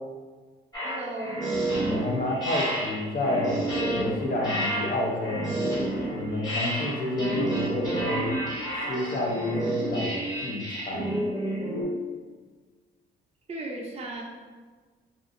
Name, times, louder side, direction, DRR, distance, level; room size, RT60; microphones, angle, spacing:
sound 1, 0.7-11.8, right 1 dB, 20° left, 1.2 m, -30 dB
voice 1, 0.8-1.5 13.5-14.2, right 1 dB, 30° right, -2 dB, 0.5 m, -35 dB
voice 2, 1.9-3.6 3.9-5.6 6.1-8.3 8.9-11.1, left 2 dB, 45° left, -2 dB, 0.7 m, -29 dB
2.6 x 2.5 x 2.5 m, 1.4 s
cardioid pair, 90°, 20 cm